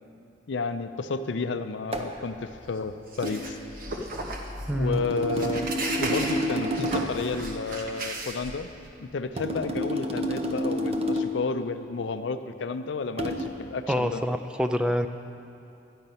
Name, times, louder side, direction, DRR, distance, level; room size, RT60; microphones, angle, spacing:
voice 1, 0.5-3.6 4.7-5.7 6.0-8.7 9.0-14.2, left 4 dB, 70° left, 10 dB, 0.5 m, -31 dB
sound 1, 1.9-2.2 3.2-3.4 4.9-7.3 9.4-11.4 13.2-13.5, equal, 35° right, 0.8 m, -29 dB
sound 2, 2.4-8.9, right 2 dB, 50° right, 1.2 m, -36 dB
voice 2, 4.7-5.0 13.9-15.1, equal, 5° right, 7 dB, 0.3 m, -26 dB
11.5 x 9.1 x 5.5 m, 2.8 s
head